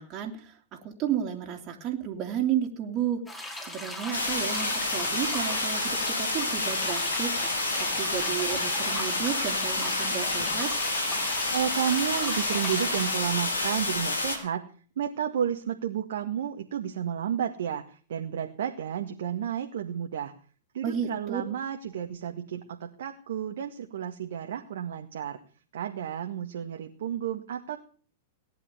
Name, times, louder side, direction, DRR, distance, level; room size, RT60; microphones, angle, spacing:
voice 1, 0.0-10.7 20.8-21.4, right 9 dB, 35° right, 2 dB, 3.0 m, -32 dB
sound 1, 3.3-13.3, left 1 dB, 10° left, 5.5 m, -39 dB
sound 2, 4.1-14.4, left 2 dB, 85° left, 5.0 m, -29 dB
voice 2, 11.5-14.7 15.0-20.3 20.7-25.4 25.7-27.8, right 9 dB, 65° right, 4 dB, 1.8 m, -31 dB
18.5 x 10.5 x 7.0 m, 0.43 s
hypercardioid pair, 105°, 0 cm